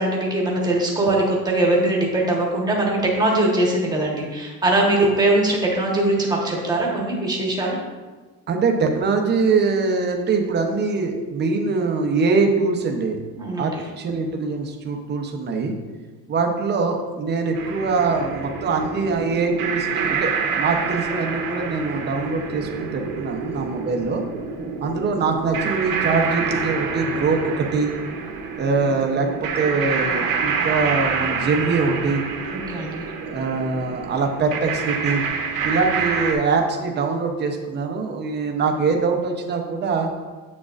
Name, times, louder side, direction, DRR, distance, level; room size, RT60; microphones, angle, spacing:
voice 1, 0.0-7.8 13.4-13.8 32.7-33.0, right 1 dB, 10° right, -2 dB, 1.1 m, -21 dB
voice 2, 8.5-13.2 13.6-15.7 16.3-24.2 24.8-27.9 28.6-32.2 33.2-35.2 35.6-40.1, right 4 dB, 25° right, 3 dB, 0.7 m, -23 dB
sound 1, 17.5-36.3, right 5 dB, 60° right, 1.0 m, -27 dB
8.4 x 6.3 x 2.4 m, 1.3 s
cardioid pair, 160°, 39 cm